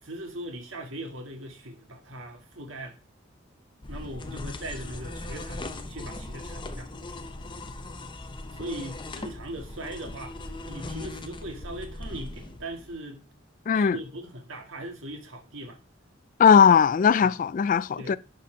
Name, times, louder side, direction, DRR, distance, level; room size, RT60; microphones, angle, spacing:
voice 1, 0.0-2.9 3.9-6.9 8.5-10.4 10.7-13.2 13.7-15.8 17.2-17.4 18.0-18.2, right 1 dB, 75° right, 1.9 m, -39 dB
wasp buzzing around, 3.8-13.0, left 2 dB, 25° left, 0.8 m, -39 dB
voice 2, 16.4-18.2, left 7 dB, 40° left, 0.3 m, -18 dB
11.0 x 4.2 x 5.0 m
head